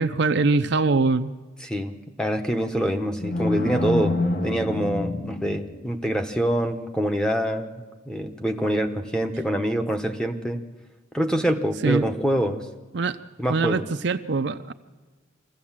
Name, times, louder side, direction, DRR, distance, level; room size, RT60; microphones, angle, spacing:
voice 1, 0.0-1.3 11.8-12.0 12.9-13.2 13.5-14.7, right 3 dB, 55° right, 10 dB, 0.6 m, -22 dB
voice 2, 1.6-4.2 4.4-10.6 11.1-12.7 13.4-13.8, equal, 5° left, 3 dB, 1.0 m, -25 dB
sound 1, 3.1-6.1, left 2 dB, 45° left, 1.2 m, -27 dB
25.0 x 15.0 x 7.4 m, 1.3 s
head